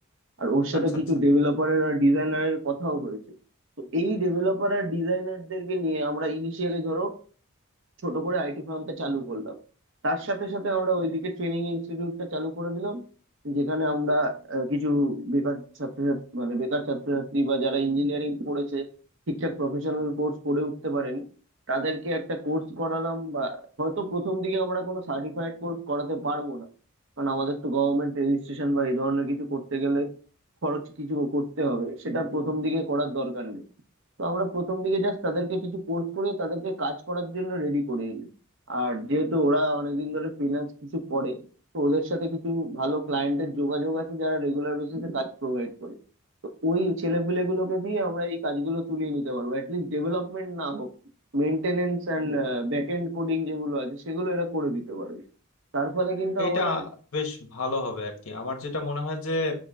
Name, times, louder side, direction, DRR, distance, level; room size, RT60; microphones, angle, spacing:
voice 1, 0.4-3.2 3.8-7.1 8.0-9.6 10.0-13.0 13.4-18.9 19.3-21.2 21.7-26.7 27.2-30.1 30.6-33.6 34.2-38.3 38.7-41.4 41.7-46.0 46.6-50.9 51.3-55.2 55.7-56.8, right 1 dB, 60° right, 6 dB, 0.8 m, -27 dB
voice 2, 56.4-56.8 57.1-59.6, left 2 dB, 80° left, 4 dB, 1.1 m, -29 dB
6.2 x 2.1 x 3.5 m, 0.39 s
head